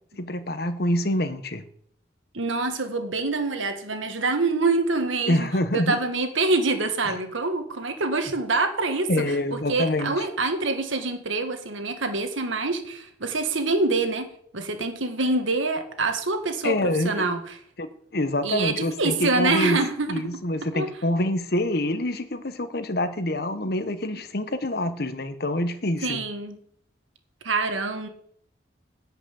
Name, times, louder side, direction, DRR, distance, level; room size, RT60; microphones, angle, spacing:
voice 1, 0.2-1.6 5.3-6.0 7.1-7.2 9.1-10.3 16.6-17.3 17.8-19.8 20.1-26.2, left 1 dB, 55° left, 11 dB, 1.1 m, -26 dB
voice 2, 2.3-17.6 18.4-20.2 20.7-20.9 24.1-24.2 26.0-26.6 27.4-28.1, right 3 dB, 90° right, 7 dB, 1.8 m, -26 dB
11.5 x 6.0 x 8.6 m, 0.63 s
head